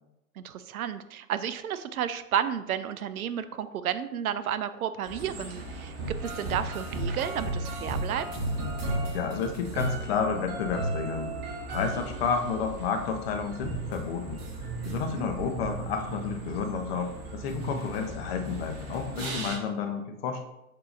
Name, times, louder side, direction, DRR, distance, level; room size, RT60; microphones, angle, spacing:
voice 1, 0.4-6.0 6.2-8.3 15.0-15.3, right 9 dB, 70° right, 12 dB, 0.5 m, -32 dB
Snares Cymbals and Xylophones Ambience, 5.0-19.6, right 2 dB, 40° right, 1.2 m, -35 dB
voice 2, 8.8-11.3 11.7-20.4, left 6 dB, 40° left, 4 dB, 0.7 m, -31 dB
6.7 x 2.8 x 2.5 m, 0.88 s
figure-of-eight pair, 110°, 45 cm